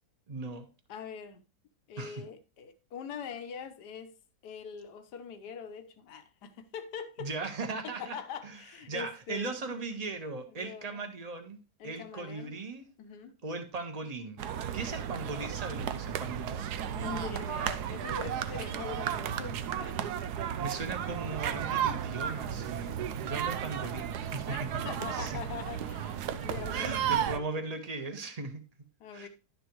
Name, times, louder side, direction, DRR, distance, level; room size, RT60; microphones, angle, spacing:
voice 1, 0.3-0.7 2.0-2.2 7.2-8.2 8.4-8.6 8.9-11.6 11.8-12.8 13.4-14.4 14.7-16.7 20.6-24.7 25.1-25.4 26.7-28.6 29.1-29.3, right 3 dB, 25° right, 1.3 m, -38 dB
voice 2, 0.9-1.4 1.9-4.2 4.4-7.3 7.8-9.6 10.5-11.1 11.8-12.5 13.0-13.3 16.9-20.0 23.7-24.1 24.4-27.6 29.0-29.3, left 6 dB, 80° left, 1.5 m, -43 dB
sound 1, 14.4-27.4, right 9 dB, 75° right, 1.2 m, -34 dB
11.5 x 7.0 x 3.1 m
omnidirectional pair, 1.8 m